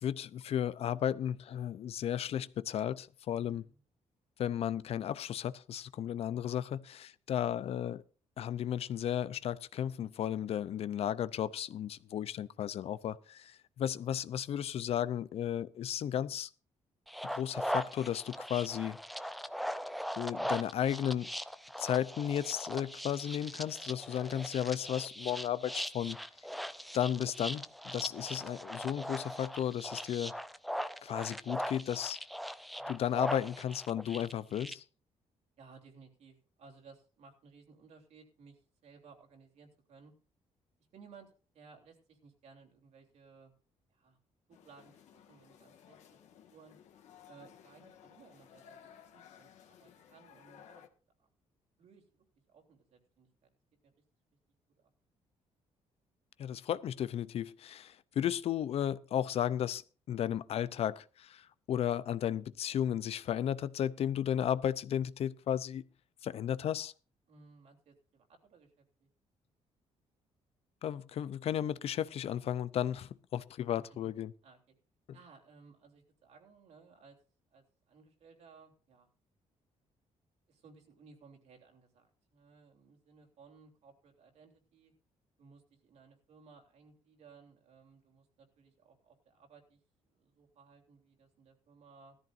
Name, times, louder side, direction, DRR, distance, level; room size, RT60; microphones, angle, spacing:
voice 1, 0.0-3.6 4.4-8.0 8.4-16.5 17.2-19.0 20.2-21.3 21.8-26.2 26.9-30.3 31.0-32.2 32.9-34.8 56.4-59.8 60.1-65.8 66.2-66.9 70.8-74.3, left 10 dB, 60° left, 0.6 m, -34 dB
voice 2, 3.3-3.8 35.6-40.1 40.9-43.5 43.9-44.2 44.5-46.2 46.5-46.8 47.2-50.9 51.2-51.3 51.8-53.5 54.8-54.9 67.3-69.1 73.7-74.0 74.4-74.7 75.1-77.2 77.5-79.1 80.5-84.9 85.4-89.8 90.1-92.2, right 5 dB, 70° right, 3.2 m, -59 dB
sound 1, 17.1-34.7, equal, ahead, 0.5 m, -40 dB
sound 2, 44.5-50.9, left 9 dB, 80° left, 1.6 m, -58 dB
17.0 x 13.5 x 2.6 m
cardioid pair, 125°, 12 cm